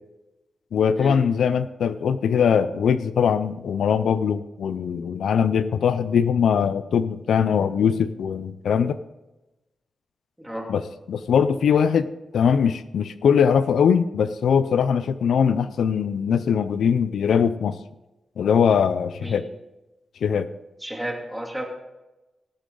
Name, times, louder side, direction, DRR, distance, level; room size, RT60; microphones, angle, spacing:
voice 1, 0.7-9.0 10.7-10.8 11.1-12.1 12.3-17.8 18.4-19.4 20.2-20.5, left 7 dB, 85° left, 13 dB, 0.5 m, -21 dB
voice 2, 10.4-10.7 19.2-19.5 20.8-21.6, right 1 dB, 5° right, 0 dB, 2.6 m, -32 dB
18.0 x 8.4 x 3.9 m, 1.0 s
wide cardioid pair, 105°, 0 cm